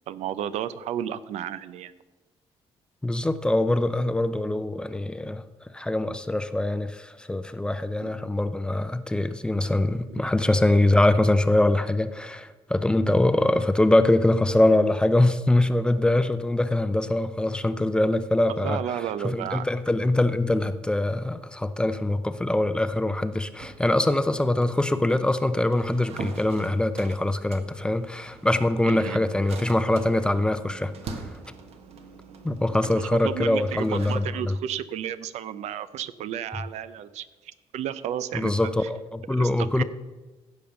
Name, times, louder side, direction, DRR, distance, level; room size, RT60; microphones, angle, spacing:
voice 1, 0.1-1.9 8.0-8.1 18.6-19.7 28.9-29.2 32.9-38.5 39.4-39.8, right 10 dB, 85° right, 14 dB, 0.6 m, -32 dB
voice 2, 3.0-5.4 5.7-18.8 19.2-31.4 32.4-34.5 38.3-39.8, left 1 dB, 10° left, 12 dB, 0.5 m, -23 dB
sound 1, 23.6-34.2, right 4 dB, 65° right, 1.3 m, -43 dB
15.5 x 5.2 x 7.0 m, 1.2 s
cardioid pair, 140°, 11 cm